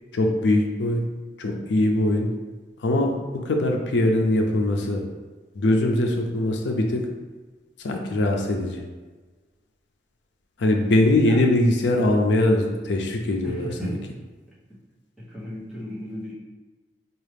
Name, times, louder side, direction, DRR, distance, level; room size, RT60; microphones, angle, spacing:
voice 1, 0.1-1.1 1.4-2.3 2.8-3.1 3.4-5.0 5.5-7.1 7.8-8.8 10.6-14.0, left 1 dB, 80° left, 2 dB, 0.5 m, -22 dB
voice 2, 13.4-14.0 14.5-14.6 15.2-16.3, equal, ahead, -9 dB, 1.0 m, -35 dB
4.6 x 2.4 x 3.3 m, 1.3 s
head